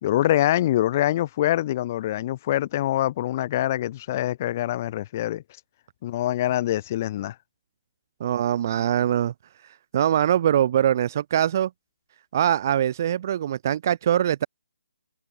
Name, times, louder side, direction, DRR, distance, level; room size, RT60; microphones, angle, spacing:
voice 1, 0.0-5.4 6.0-7.3, left 13 dB, 20° left, 3.3 m, -24 dB
voice 2, 8.2-9.3 9.6-11.7 12.3-14.5, right 10 dB, 25° right, 1.3 m, -23 dB
hypercardioid pair, 175°, 4 cm